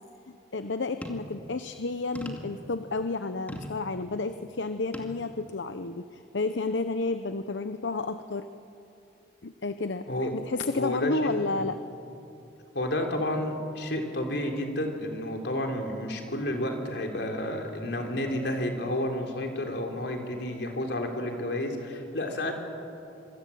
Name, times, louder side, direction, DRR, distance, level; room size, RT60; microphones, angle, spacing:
voice 1, 0.3-8.5 9.4-11.8, left 3 dB, 85° left, 10 dB, 0.8 m, -31 dB
sound 1, 1.0-1.4 2.2-2.6 3.5-3.8 4.9-5.2 5.9-6.0, equal, 10° left, 2.2 m, -39 dB
voice 2, 10.8-11.4 12.7-22.5, left 1 dB, 65° left, 3 dB, 3.9 m, -31 dB
26.0 x 23.5 x 8.7 m, 2.7 s
head